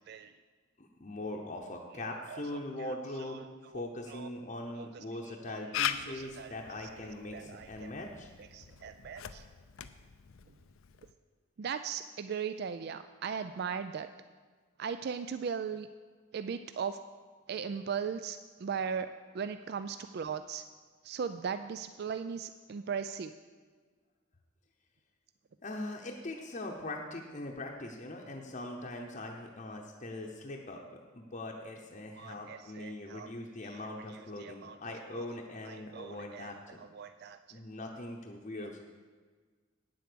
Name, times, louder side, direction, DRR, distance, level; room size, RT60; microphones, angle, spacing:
voice 1, 0.8-3.4 3.7-8.3 25.6-36.8 37.5-38.8, left 1 dB, 35° left, 0 dB, 0.8 m, -41 dB
voice 2, 1.9-3.5 4.1-4.3 4.8-5.8 6.1-7.9 8.4-9.4 11.6-14.1 14.8-15.9 16.3-17.0 17.5-20.6 21.0-23.3 32.2-33.3 33.6-35.3 35.6-37.6 38.6-38.8, right 6 dB, 50° right, 10 dB, 0.3 m, -39 dB
Camera, 5.7-11.1, left 9 dB, 85° left, 0.5 m, -40 dB
9.2 x 7.8 x 6.8 m, 1.5 s
head